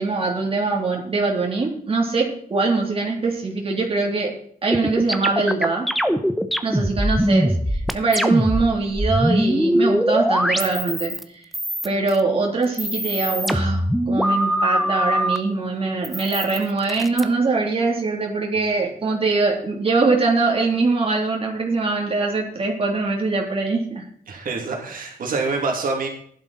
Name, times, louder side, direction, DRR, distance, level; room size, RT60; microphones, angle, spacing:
voice 1, 0.0-4.3 4.6-5.9 6.6-11.1 11.8-24.0, right 3 dB, 40° right, -1 dB, 3.5 m, -22 dB
sound 1, 4.7-8.7 8.9-11.2 11.5-12.2 12.6-15.4 16.0-17.2, equal, ahead, 1.0 m, -22 dB
voice 2, 24.3-26.1, right 4 dB, 70° right, 0 dB, 2.9 m, -26 dB
16.0 x 11.0 x 4.4 m, 0.62 s
wide cardioid pair, 145°, 15 cm